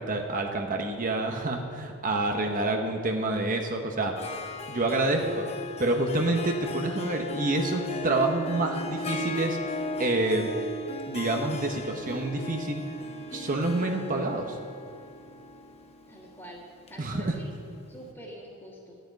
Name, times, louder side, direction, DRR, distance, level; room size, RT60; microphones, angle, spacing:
voice 1, 0.0-4.2 4.7-5.5 5.8-10.5 11.1-12.8 13.3-14.6 17.0-17.4, right 2 dB, 40° right, 3 dB, 1.0 m, -28 dB
voice 2, 2.2-2.5 16.1-17.5 17.9-19.0, equal, 15° left, -10 dB, 2.0 m, -46 dB
Harp, 4.2-17.7, left 2 dB, 30° left, 0.8 m, -37 dB
12.0 x 6.6 x 9.2 m, 2.5 s
head